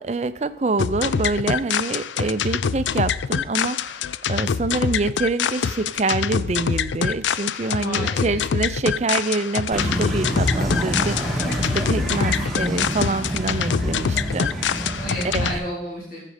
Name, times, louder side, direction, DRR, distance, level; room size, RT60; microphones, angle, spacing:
voice 1, 0.0-4.0 4.3-15.0 15.3-15.6, right 3 dB, 40° right, 13 dB, 0.5 m, -26 dB
sound 1, 0.8-15.5, left 7 dB, 85° left, 0.4 m, -25 dB
voice 2, 7.7-8.5 14.6-16.2, equal, 45° left, -5 dB, 3.6 m, -32 dB
sound 2, 9.7-15.6, equal, ahead, 1.9 m, -27 dB
14.5 x 7.5 x 5.0 m, 0.73 s
head